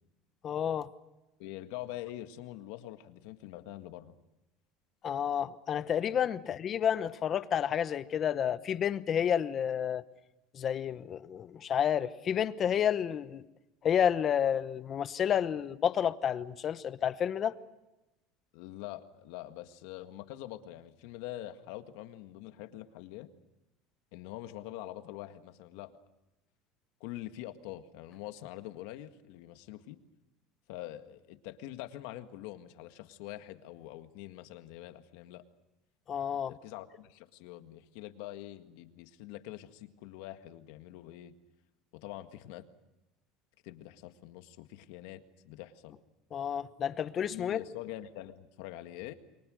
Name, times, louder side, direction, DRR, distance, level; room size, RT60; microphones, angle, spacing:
voice 1, 0.4-0.9 5.0-10.0 10.5-13.4 13.8-17.6 36.1-36.5 46.3-47.6, left 9 dB, 35° left, 1.0 m, -30 dB
voice 2, 1.4-4.1 6.4-6.6 18.5-23.3 24.1-25.9 27.0-30.0 30.7-35.4 36.5-41.3 41.9-42.6 43.6-46.0 47.3-49.1, left 14 dB, 75° left, 1.8 m, -45 dB
29.5 x 23.5 x 6.5 m
cardioid pair, 140°, 0 cm